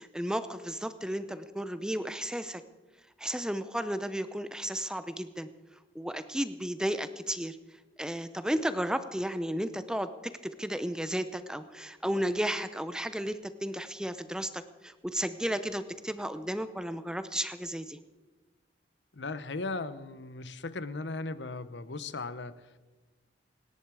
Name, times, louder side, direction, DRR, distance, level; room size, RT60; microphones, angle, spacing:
voice 1, 0.0-2.6 3.2-5.5 5.9-7.6 8.0-18.0, equal, 5° right, 11 dB, 0.7 m, -33 dB
voice 2, 19.1-22.8, left 3 dB, 80° left, 14 dB, 0.9 m, -37 dB
25.0 x 10.5 x 4.8 m, 1.3 s
head